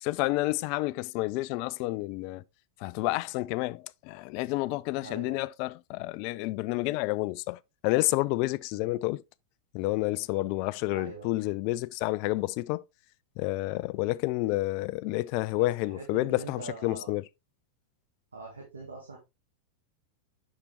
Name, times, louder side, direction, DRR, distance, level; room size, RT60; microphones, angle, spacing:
voice 1, 0.0-2.4 2.8-9.2 9.7-12.8 13.4-17.2, left 19 dB, 45° left, 0.3 m, -30 dB
voice 2, 5.0-5.5 8.7-9.0 10.9-11.3 15.5-17.2 18.3-19.2, right 4 dB, 75° right, 1.5 m, -43 dB
6.7 x 5.8 x 3.0 m
figure-of-eight pair, 90°, 0 cm